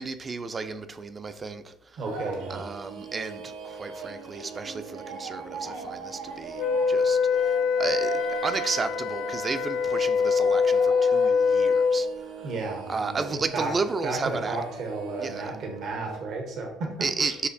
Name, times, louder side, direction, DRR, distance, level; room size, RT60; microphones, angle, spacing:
voice 1, 0.0-2.0 2.5-12.1 12.4-12.5 12.9-14.6 15.2-15.5 17.0-17.5, right 4 dB, 35° right, 0.4 m, -33 dB
voice 2, 2.0-2.6 12.4-13.2 13.5-13.7 14.0-16.9 17.2-17.3, right 3 dB, 65° right, 0.8 m, -32 dB
sound 1, 2.0-16.2, right 4 dB, 90° right, 0.6 m, -39 dB
Wind instrument woodwind instrument, 6.6-12.1, left 5 dB, 65° left, 0.3 m, -24 dB
6.3 x 2.5 x 2.5 m
supercardioid pair, 75°, 0 cm